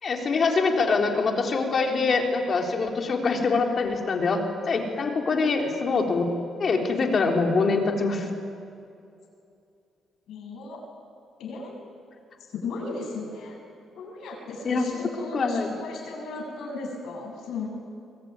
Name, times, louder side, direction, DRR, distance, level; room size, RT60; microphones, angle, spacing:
voice 1, 0.0-6.3 6.6-8.3 14.7-14.8 15.3-15.8, left 4 dB, 45° left, 2 dB, 3.7 m, -24 dB
voice 2, 10.3-10.8 11.4-11.7 12.5-13.6 14.0-17.7, left 3 dB, 75° left, 1 dB, 7.9 m, -35 dB
24.5 x 20.5 x 9.6 m, 2.5 s
cardioid pair, 110°, 0 cm